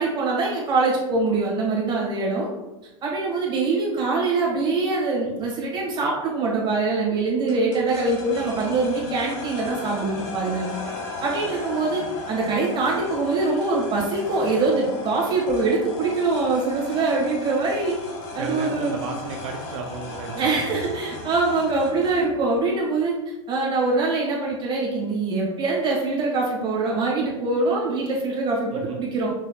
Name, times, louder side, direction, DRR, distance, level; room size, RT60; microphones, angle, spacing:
voice 1, 0.0-2.5 3.0-10.7 11.2-12.0 12.3-17.9 18.3-18.9 20.4-23.1 23.5-29.3, right 3 dB, 30° right, -3 dB, 1.5 m, -23 dB
sound 1, 7.5-22.3, left 3 dB, 45° left, 1.2 m, -36 dB
voice 2, 18.3-20.9 28.7-29.0, right 4 dB, 70° right, 1 dB, 0.6 m, -33 dB
6.1 x 3.1 x 2.3 m, 1.0 s
hypercardioid pair, 115°, 17 cm